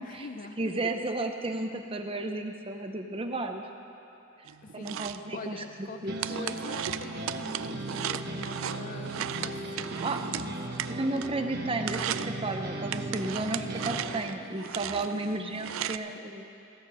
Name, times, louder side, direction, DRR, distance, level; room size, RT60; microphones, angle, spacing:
voice 1, 0.0-0.7 4.6-9.9 10.2-10.8 16.1-16.2, left 3 dB, 40° left, 8 dB, 0.5 m, -44 dB
voice 2, 0.6-3.6 4.7-6.1 10.0-10.2 10.9-16.5, right 2 dB, 25° right, 5 dB, 0.6 m, -33 dB
sound 1, 4.5-11.5 11.8-12.4 12.9-16.0, right 10 dB, 70° right, 0.3 m, -37 dB
sound 2, 6.1-14.2, right 1 dB, 50° right, 1.2 m, -37 dB
16.0 x 5.9 x 7.8 m, 3.0 s
head